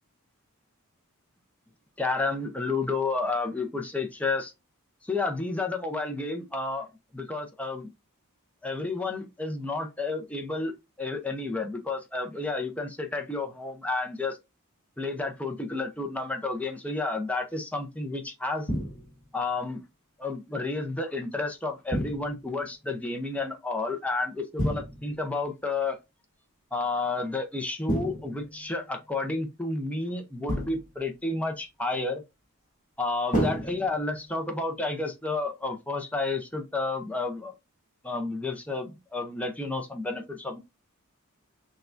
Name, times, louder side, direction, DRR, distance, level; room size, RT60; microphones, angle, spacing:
voice 1, 2.0-4.5 5.0-6.9 7.1-7.9 8.6-10.7 11.0-14.4 15.0-18.7 19.3-19.8 20.2-26.0 26.7-32.2 33.0-37.5 38.0-40.6, left 3 dB, 5° left, 0.5 m, -31 dB
sound 1, 18.7-19.3 21.9-22.6 24.6-25.3 27.9-28.8 30.5-31.0 33.3-34.4, equal, 35° left, 1.3 m, -31 dB
6.3 x 2.3 x 2.5 m
head